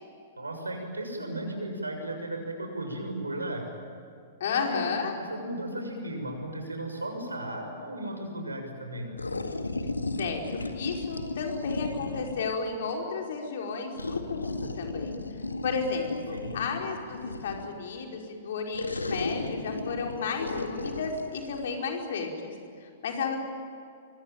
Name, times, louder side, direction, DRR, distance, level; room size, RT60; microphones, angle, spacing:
voice 1, 0.4-3.6 4.5-4.8 5.3-9.1 16.3-16.6, right 1 dB, 80° right, 3 dB, 6.8 m, -35 dB
voice 2, 4.4-5.2 10.2-15.1 15.6-22.5 22.8-23.4, left 5 dB, 55° left, 1 dB, 5.0 m, -33 dB
sound 1, 9.2-12.5 14.0-17.8 18.7-21.7, left 2 dB, 80° left, 1.9 m, -35 dB
25.5 x 24.5 x 9.1 m, 2.4 s
figure-of-eight pair, 105°, 0 cm